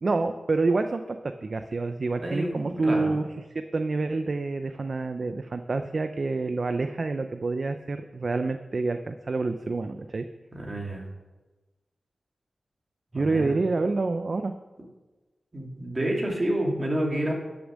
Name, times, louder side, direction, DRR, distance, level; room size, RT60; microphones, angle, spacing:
voice 1, 0.0-3.2 3.7-10.2 13.1-14.5, right 3 dB, 45° right, 8 dB, 0.5 m, -27 dB
voice 2, 2.2-3.1 10.5-11.0 13.1-13.5 15.5-17.3, right 1 dB, 25° right, -1 dB, 2.6 m, -29 dB
12.5 x 7.0 x 6.3 m, 1.2 s
wide cardioid pair, 130°, 0 cm